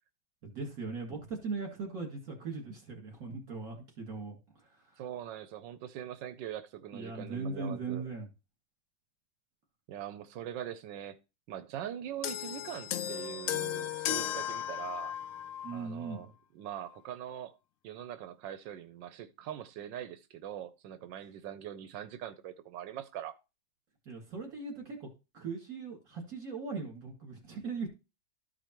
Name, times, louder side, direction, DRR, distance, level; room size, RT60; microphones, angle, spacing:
voice 1, 0.4-5.0 6.9-8.3 15.6-16.2 24.1-25.1 25.3-27.9, right 4 dB, 55° right, 2.6 m, -39 dB
voice 2, 5.0-8.0 9.9-11.2 11.5-15.1 15.7-16.3 16.5-17.5 17.8-23.3, right 10 dB, 85° right, 1.3 m, -42 dB
sound 1, 12.2-15.8 16.7-16.9, left 11 dB, 80° left, 0.7 m, -35 dB
13.5 x 5.0 x 3.0 m
omnidirectional pair, 1.9 m